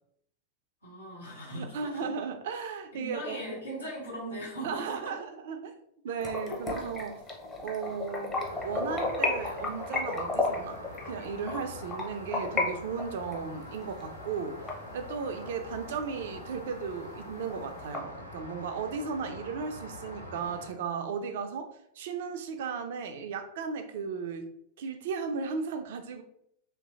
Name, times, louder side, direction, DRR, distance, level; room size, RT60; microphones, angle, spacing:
voice 1, 0.8-2.1 2.9-5.1 6.4-6.5, right 1 dB, 85° left, -8 dB, 1.3 m, -39 dB
voice 2, 1.5-3.4 4.6-5.7 6.0-7.2 7.6-8.3 8.6-10.8 11.0-14.6 14.9-24.5 24.8-26.2, right 5 dB, 55° right, 7 dB, 0.3 m, -35 dB
sound 1, 6.2-12.7 13.0-15.5 15.9-16.0 16.4-16.5 16.8-16.9 17.2-18.0, left 3 dB, 15° left, 0.7 m, -33 dB
Rain, 8.3-20.7, left 1 dB, 90° right, 0.7 m, -45 dB
3.0 x 2.5 x 2.4 m, 0.72 s
figure-of-eight pair, 90°, 0 cm